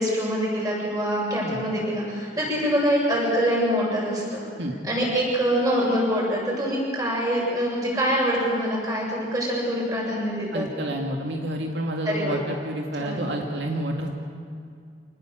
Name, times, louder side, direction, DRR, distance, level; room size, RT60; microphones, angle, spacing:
voice 1, 0.0-4.5 4.8-10.7 12.0-12.4 13.0-13.3, equal, 20° right, -3 dB, 7.6 m, -25 dB
voice 2, 10.5-14.1, right 1 dB, 85° right, 1 dB, 2.4 m, -29 dB
26.0 x 19.5 x 7.9 m, 2.3 s
head